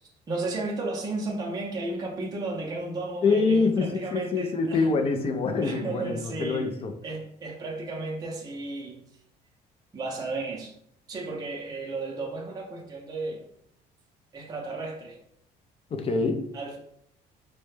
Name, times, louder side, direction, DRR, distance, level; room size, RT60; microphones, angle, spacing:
voice 1, 0.3-4.9 5.6-6.7 7.0-9.0 9.9-10.7 11.1-13.5 14.3-15.2 16.5-16.8, right 3 dB, 20° right, -2 dB, 0.5 m, -34 dB
voice 2, 3.2-6.9 15.9-16.5, left 4 dB, 35° left, 5 dB, 0.4 m, -25 dB
2.2 x 2.1 x 3.1 m, 0.68 s
cardioid pair, 110°, 17 cm